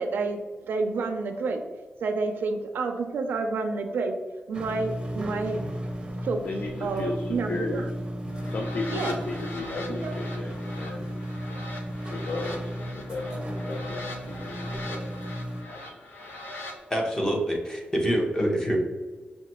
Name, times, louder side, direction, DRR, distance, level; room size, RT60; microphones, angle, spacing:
voice 1, 0.0-1.6 2.0-4.2 4.5-5.6 6.2-6.5 6.8-7.9 8.9-9.2 9.9-10.1, right 3 dB, 85° right, 4 dB, 0.4 m, -29 dB
sound 1, 4.5-15.6, equal, 25° right, 0.6 m, -34 dB
voice 2, 6.4-7.9 8.5-11.7 12.1-12.7 13.0-15.2 15.7-16.2, left 3 dB, 50° left, 2 dB, 0.4 m, -35 dB
sound 2, 8.3-16.8, left 2 dB, 70° left, 0.7 m, -41 dB
voice 3, 16.9-18.8, equal, 20° left, 0 dB, 0.7 m, -26 dB
5.5 x 2.2 x 2.9 m, 1.4 s
wide cardioid pair, 175°, 3 cm